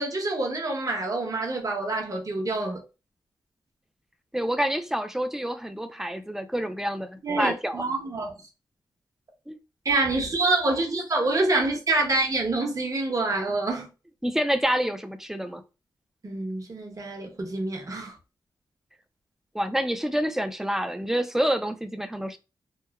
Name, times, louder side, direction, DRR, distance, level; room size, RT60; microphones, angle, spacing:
voice 1, 0.0-2.8 7.2-8.3 9.8-13.9 16.2-18.2, right 2 dB, 40° right, 0.9 m, -26 dB
voice 2, 4.3-7.8 9.5-9.6 14.2-15.6 19.5-22.4, equal, 5° right, 0.4 m, -27 dB
3.0 x 2.1 x 2.3 m
cardioid pair, 60°, 9 cm